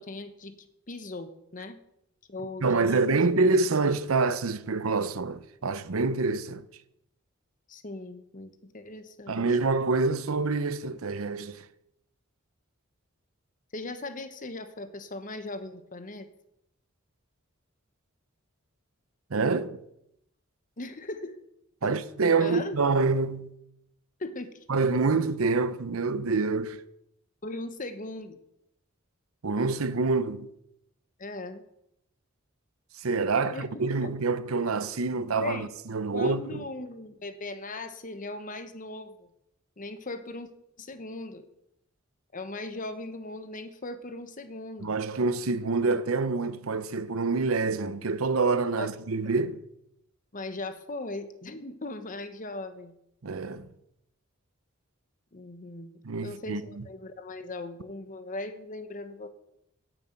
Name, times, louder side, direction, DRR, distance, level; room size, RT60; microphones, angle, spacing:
voice 1, 0.0-1.8 2.3-3.3 7.7-9.5 13.7-16.3 20.8-21.4 21.8-21.9 22.2-22.8 24.2-24.5 27.4-28.4 31.2-31.6 33.4-33.7 34.0-34.1 35.4-35.7 36.1-39.3 39.8-40.5 40.8-41.5 42.3-44.9 48.8-48.9 50.3-52.9 55.3-55.9 56.2-59.3, left 2 dB, 40° left, 1.1 m, -38 dB
voice 2, 2.6-6.6 9.3-11.7 19.3-19.8 21.8-23.5 24.7-26.8 29.4-30.5 33.0-36.6 44.8-49.6 53.2-53.7 56.0-56.8, right 3 dB, 85° right, 0.7 m, -26 dB
10.0 x 7.1 x 8.8 m
head